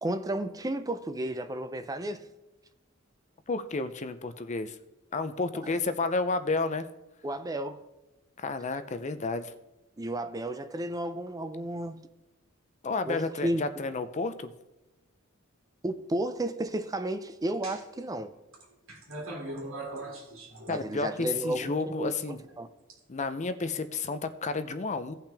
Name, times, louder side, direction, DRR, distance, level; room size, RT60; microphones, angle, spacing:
voice 1, 0.0-2.3 5.6-5.7 7.2-7.8 10.0-12.0 13.1-13.6 15.8-18.3 20.7-22.1 22.6-22.7, right 1 dB, 15° right, 0.5 m, -32 dB
voice 2, 3.5-4.8 5.1-6.9 8.4-9.5 12.8-14.5 20.7-22.4 23.1-25.2, left 3 dB, 35° left, 0.5 m, -31 dB
sound 1, 17.6-18.0 18.5-21.2 22.1-22.9, right 1 dB, 75° right, 2.3 m, -41 dB
17.0 x 5.8 x 3.4 m
head